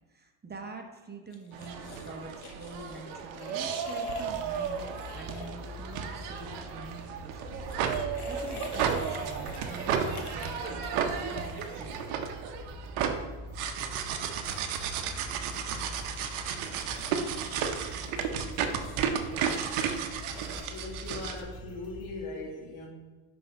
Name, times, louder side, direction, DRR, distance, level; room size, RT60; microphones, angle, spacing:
voice 1, 0.1-4.9 5.1-7.7 8.3-12.2, right 3 dB, 20° right, 3 dB, 0.8 m, -46 dB
sound 1, 1.3-6.4 7.5-12.7 15.9-20.7, left 5 dB, 50° left, 0.9 m, -48 dB
sound 2, 1.5-21.4, right 7 dB, 90° right, 0.7 m, -33 dB
sound 3, 4.2-22.1, left 1 dB, 15° left, 1.9 m, -45 dB
voice 2, 19.6-22.9, left 3 dB, 85° left, 0 dB, 1.6 m, -41 dB
5.5 x 3.5 x 5.2 m, 1.3 s
cardioid pair, 95°, 48 cm